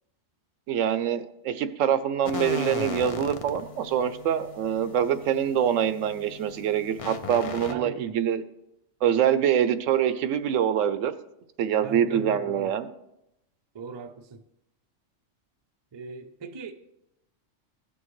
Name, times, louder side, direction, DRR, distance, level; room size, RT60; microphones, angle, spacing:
voice 1, 0.7-8.4 9.0-11.1 11.6-12.9, right 9 dB, 80° right, 0.9 m, -25 dB
sound 1, 2.2-7.7, left 4 dB, 50° left, 0.4 m, -37 dB
voice 2, 7.7-8.2 11.8-12.7 13.7-14.4 15.9-16.7, right 5 dB, 40° right, 0.4 m, -39 dB
16.0 x 6.3 x 3.1 m
omnidirectional pair, 1.3 m